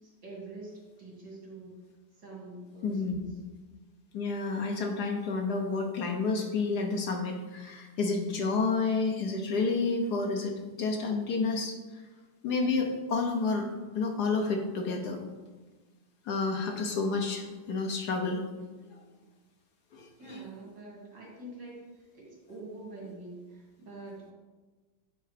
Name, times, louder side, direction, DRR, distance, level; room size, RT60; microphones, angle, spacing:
voice 1, 0.0-1.7 2.2-3.3 20.2-24.3, right 2 dB, 75° right, -3 dB, 2.9 m, -45 dB
voice 2, 2.8-3.2 4.1-11.7 12.4-13.7 13.9-15.2 16.3-18.4 19.9-20.4, left 4 dB, 65° left, 2 dB, 1.4 m, -30 dB
8.9 x 3.7 x 5.0 m, 1.3 s
omnidirectional pair, 1.9 m